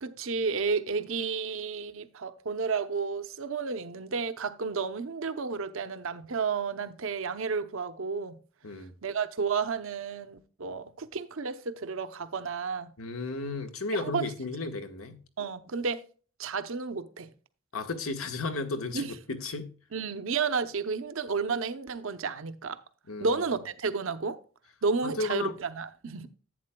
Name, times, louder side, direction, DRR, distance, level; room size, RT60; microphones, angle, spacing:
voice 1, 0.0-8.4 9.0-12.9 13.9-14.3 15.4-16.0 16.4-17.3 18.9-19.1 19.9-22.8 23.2-24.4 24.8-26.3, right 5 dB, 70° right, 0.8 m, -32 dB
voice 2, 13.0-15.2 17.7-19.7 23.1-23.4 25.0-25.5, left 3 dB, 80° left, 1.4 m, -34 dB
11.0 x 8.7 x 2.3 m
head